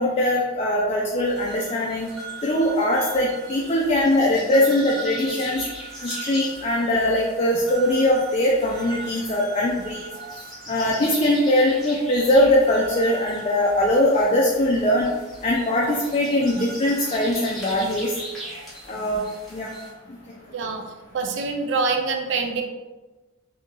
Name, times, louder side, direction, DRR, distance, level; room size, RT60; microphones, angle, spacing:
voice 1, 0.0-2.1 2.4-5.6 6.0-10.0 10.7-15.1 15.4-18.1 18.9-19.2 19.5-19.7, left 1 dB, 30° left, -3 dB, 0.4 m, -21 dB
sound 1, 1.2-19.9, right 2 dB, ahead, 0.9 m, -38 dB
voice 2, 20.5-20.9 21.1-22.6, right 4 dB, 60° right, 4 dB, 0.4 m, -25 dB
2.8 x 2.8 x 3.6 m, 1.2 s
head